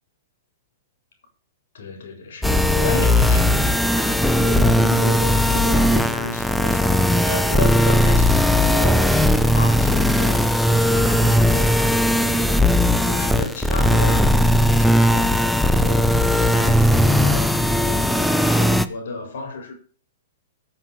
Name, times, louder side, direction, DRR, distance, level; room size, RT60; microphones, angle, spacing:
voice 1, 1.7-8.4 8.7-10.4 10.7-17.5 17.8-19.7, left 3 dB, 75° left, 3.9 m, -33 dB
sound 1, 2.4-18.9, left 1 dB, ahead, 0.5 m, -18 dB
16.0 x 5.7 x 5.6 m
hypercardioid pair, 145°, 0 cm